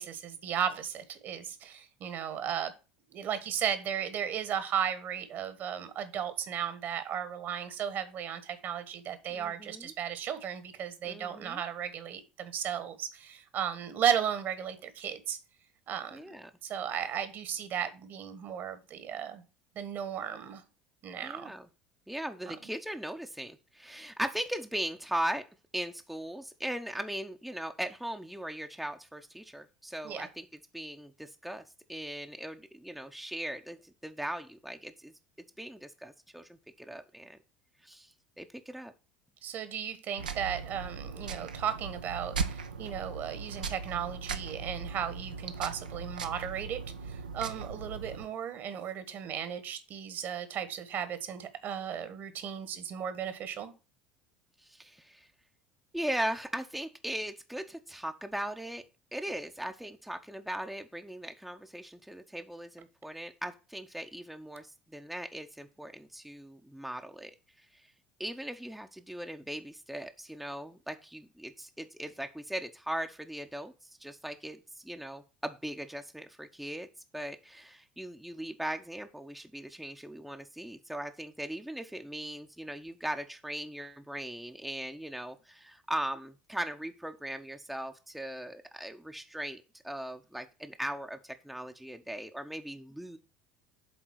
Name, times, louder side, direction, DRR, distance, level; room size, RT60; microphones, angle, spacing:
voice 1, 0.0-2.7 3.1-15.4 15.9-16.3 16.6-19.4 19.7-20.6 21.0-21.5 22.5-22.6 30.0-30.3 39.4-53.7, right 9 dB, 50° right, 1.4 m, -35 dB
voice 2, 9.3-9.9 11.0-11.6 16.1-16.5 21.2-21.7 22.1-25.5 25.7-30.5 30.7-31.6 31.9-35.1 35.6-37.4 37.8-38.9 54.6-55.3 55.9-58.8 59.1-67.3 67.6-67.9 68.2-76.9 77.1-93.2, right 1 dB, ahead, 0.8 m, -39 dB
sound 1, 40.2-48.2, right 5 dB, 80° right, 0.7 m, -38 dB
8.0 x 3.8 x 6.3 m
figure-of-eight pair, 65°, 4 cm